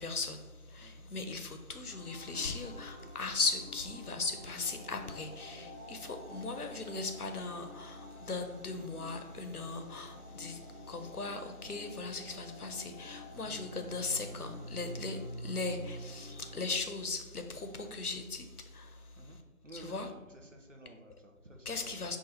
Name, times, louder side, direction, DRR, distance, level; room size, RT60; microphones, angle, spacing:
voice 1, 0.0-19.0 19.7-20.1 21.7-22.2, left 3 dB, 85° left, 7 dB, 0.8 m, -38 dB
voice 2, 0.8-1.1 13.3-13.8 19.2-22.1, right 1 dB, 60° right, 3 dB, 0.7 m, -53 dB
sound 1, 1.9-16.6, equal, 40° right, 1.2 m, -48 dB
4.9 x 2.3 x 4.0 m, 1.2 s
figure-of-eight pair, 175°, 44 cm